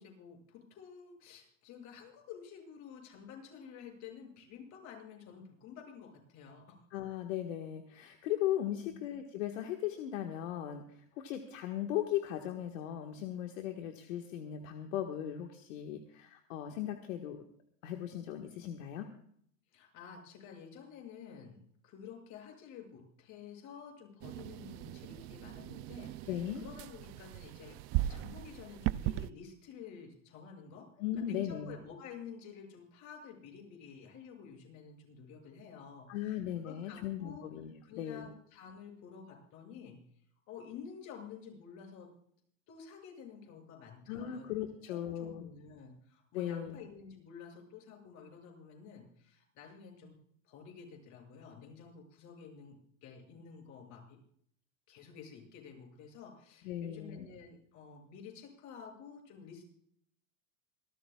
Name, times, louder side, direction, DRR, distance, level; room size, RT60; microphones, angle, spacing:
voice 1, 0.0-6.8 8.8-9.0 19.7-27.8 28.1-30.9 31.2-37.5 37.8-40.0 40.5-42.1 42.7-44.4 44.8-50.2 50.4-54.2 54.9-59.7, left 6 dB, 45° left, 2 dB, 7.3 m, -51 dB
voice 2, 6.9-17.4 17.8-19.1 26.3-26.6 31.0-31.7 36.1-38.3 44.1-45.5 46.3-46.8 56.6-57.3, left 11 dB, 70° left, 4 dB, 1.7 m, -37 dB
Refreg broken, 24.2-29.3, right 15 dB, 35° right, 0.4 m, -38 dB
27.0 x 13.0 x 2.4 m, 0.65 s
supercardioid pair, 125°, 40 cm